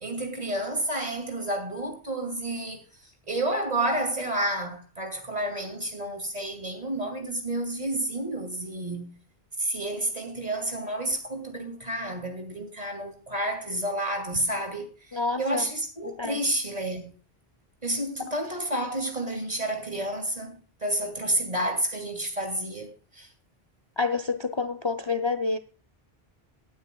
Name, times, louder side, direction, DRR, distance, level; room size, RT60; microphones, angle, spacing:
voice 1, 0.0-2.8 3.3-9.2 9.6-14.9 15.4-17.1 17.8-22.9 23.1-23.3, right 1 dB, 40° right, 2.7 m, -30 dB
voice 2, 15.1-15.6 16.2-16.4 24.0-25.6, left 4 dB, 35° left, 0.6 m, -28 dB
19.5 x 9.3 x 2.3 m
omnidirectional pair, 1.0 m